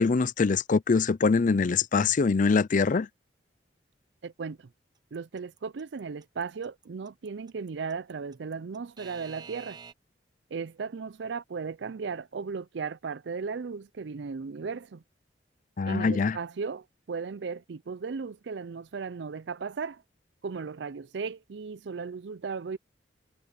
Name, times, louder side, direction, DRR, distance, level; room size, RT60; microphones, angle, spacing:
voice 1, 0.0-3.1 15.8-16.4, left 4 dB, 45° left, 0.5 m, -23 dB
voice 2, 4.2-4.7 5.1-9.8 10.5-15.0 15.8-20.0 20.4-22.8, right 5 dB, 70° right, 0.5 m, -36 dB
Alarm / Clock, 5.1-9.9, right 6 dB, 25° right, 0.9 m, -47 dB
head